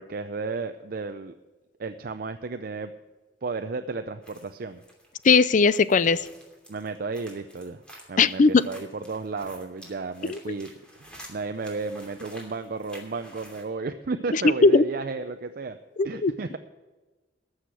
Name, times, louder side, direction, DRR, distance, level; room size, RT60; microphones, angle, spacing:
voice 1, 0.0-1.3 1.8-2.9 3.4-4.8 6.7-7.8 8.1-10.7 11.0-15.8 16.0-16.6, right 3 dB, 55° right, 8 dB, 0.5 m, -33 dB
sound 1, 4.2-13.6, equal, 5° left, 2.8 m, -50 dB
voice 2, 5.2-6.2 8.2-8.5 10.3-10.4 14.3-14.8 16.0-16.3, left 4 dB, 45° left, 17 dB, 0.4 m, -19 dB
13.5 x 6.5 x 8.2 m, 1.2 s
head